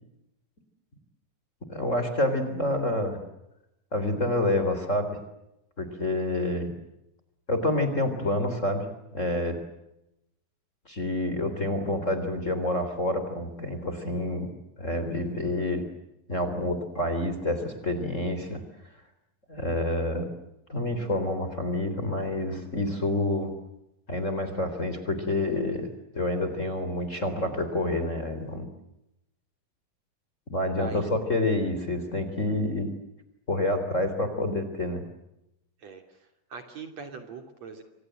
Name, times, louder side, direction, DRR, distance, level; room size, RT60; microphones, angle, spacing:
voice 1, 1.7-3.2 3.9-5.2 5.8-6.7 7.5-8.9 9.1-9.6 10.9-15.8 16.3-18.6 19.5-20.3 20.7-23.5 24.1-28.7 30.5-32.9 33.5-35.0, left 1 dB, 20° left, 9 dB, 3.5 m, -28 dB
voice 2, 36.5-37.8, right 4 dB, 50° right, 6 dB, 3.8 m, -40 dB
29.5 x 26.0 x 7.8 m, 0.86 s
omnidirectional pair, 4.0 m